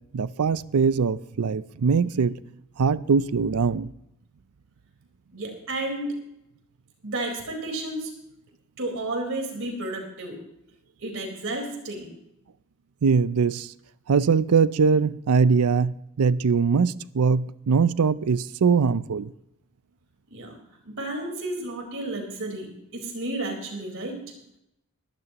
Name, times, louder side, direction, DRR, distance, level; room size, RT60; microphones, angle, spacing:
voice 1, 0.1-2.4 2.8-3.9 13.0-13.7 14.1-19.3, right 5 dB, 85° right, 0.5 m, -22 dB
voice 2, 5.3-6.3 7.0-8.1 8.8-10.4 11.0-12.1 20.3-20.5 20.8-24.2, right 2 dB, 60° right, 4.3 m, -32 dB
21.5 x 12.5 x 2.9 m
head